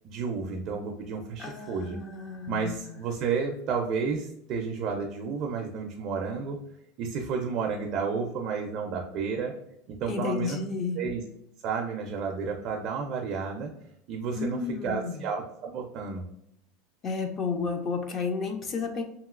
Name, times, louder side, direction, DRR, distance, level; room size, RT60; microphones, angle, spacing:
voice 1, 0.0-2.0 2.5-6.6 7.0-9.5 10.0-10.6 11.0-11.2 11.6-13.7 14.1-16.2, right 5 dB, 40° right, 1 dB, 0.4 m, -31 dB
voice 2, 1.4-3.0 10.1-11.0 14.4-15.2 17.0-19.0, left 4 dB, 30° left, 5 dB, 0.4 m, -32 dB
2.9 x 2.7 x 2.4 m, 0.78 s
supercardioid pair, 155°, 0 cm